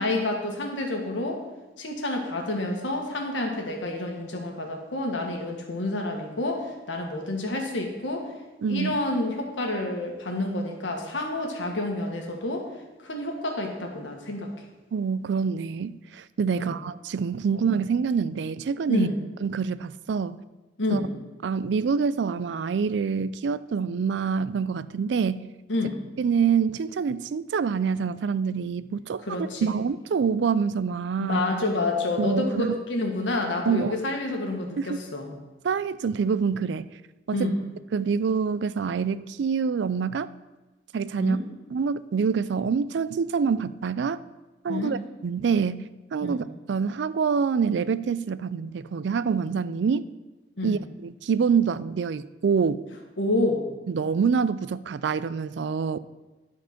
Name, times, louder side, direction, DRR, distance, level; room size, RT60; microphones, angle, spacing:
voice 1, 0.0-1.4 1.8-8.3 8.7-12.7 13.0-14.5 16.5-16.8 17.5-17.6 18.9-19.2 20.8-21.1 25.7-26.0 29.2-29.7 31.2-35.3 37.3-37.6 41.2-41.4 44.7-44.9 46.2-46.4 50.6-50.8 53.2-53.6, left 2 dB, 90° left, 2 dB, 1.6 m, -28 dB
voice 2, 8.6-9.0 14.9-19.1 19.4-20.4 20.9-21.0 21.4-25.5 26.2-29.2 29.6-31.4 32.2-32.8 33.7-34.0 34.8-35.0 35.6-36.9 37.3-37.5 37.9-40.3 40.9-41.4 41.7-44.2 44.6-50.1 50.6-52.8 53.9-56.0, right 6 dB, 70° right, 16 dB, 0.3 m, -26 dB
12.0 x 4.6 x 5.9 m, 1.1 s
head